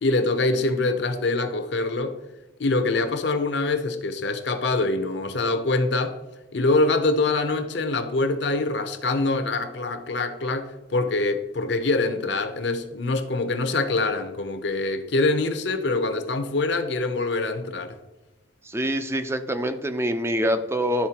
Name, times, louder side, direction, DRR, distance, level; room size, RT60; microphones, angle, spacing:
voice 1, 0.0-2.2 2.6-6.2 6.5-18.0, left 2 dB, 60° left, 0.7 m, -24 dB
voice 2, 18.7-21.1, equal, 15° right, 0.4 m, -25 dB
11.5 x 4.2 x 2.9 m
head